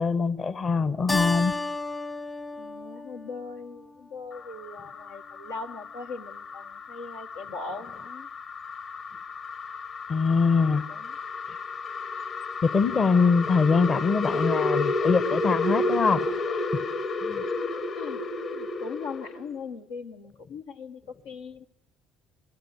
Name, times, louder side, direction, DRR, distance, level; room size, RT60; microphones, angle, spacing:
voice 1, 0.0-1.5 10.1-10.8 12.6-16.8 17.2-17.4, left 4 dB, 45° left, 1.3 m, -23 dB
Keyboard (musical), 1.1-4.0, left 2 dB, 25° left, 1.2 m, -32 dB
voice 2, 2.6-8.3 10.9-11.2 17.4-17.5 17.8-18.2 18.5-21.6, left 4 dB, 85° left, 1.5 m, -40 dB
sound 1, 4.3-19.5, left 3 dB, 60° left, 4.1 m, -31 dB
29.5 x 21.0 x 8.2 m
hypercardioid pair, 60°, 0 cm